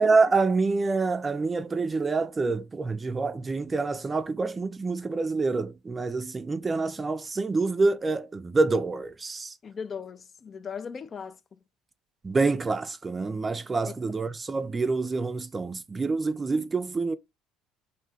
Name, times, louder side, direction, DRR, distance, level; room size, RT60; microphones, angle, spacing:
voice 1, 0.0-9.5 12.2-17.1, right 3 dB, 25° right, 0.4 m, -26 dB
voice 2, 9.6-11.6 13.9-14.0, left 6 dB, 40° left, 0.4 m, -38 dB
2.7 x 2.2 x 3.5 m
hypercardioid pair, 65°, 0 cm